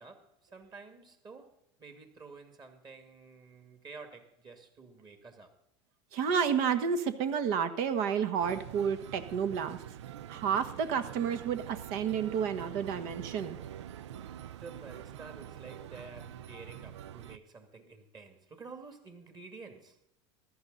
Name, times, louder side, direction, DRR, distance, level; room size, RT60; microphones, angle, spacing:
voice 1, 0.0-5.6 14.5-20.0, right 4 dB, 30° right, 2.1 m, -50 dB
voice 2, 6.1-9.8 10.3-13.6, right 7 dB, 60° right, 1.4 m, -30 dB
sound 1, 8.4-17.4, right 10 dB, 85° right, 0.5 m, -45 dB
15.0 x 12.5 x 4.0 m
hypercardioid pair, 95°, 14 cm